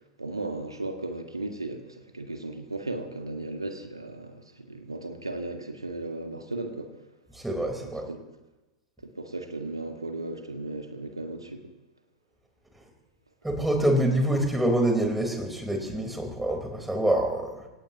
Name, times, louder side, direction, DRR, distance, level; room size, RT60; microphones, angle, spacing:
voice 1, 0.2-6.9 8.1-8.2 9.0-11.7, right 2 dB, 85° right, 5 dB, 1.6 m, -36 dB
voice 2, 7.3-8.1 13.4-17.7, right 1 dB, 5° right, 3 dB, 4.2 m, -26 dB
26.5 x 17.5 x 3.0 m, 1.1 s
figure-of-eight pair, 90°, 2 cm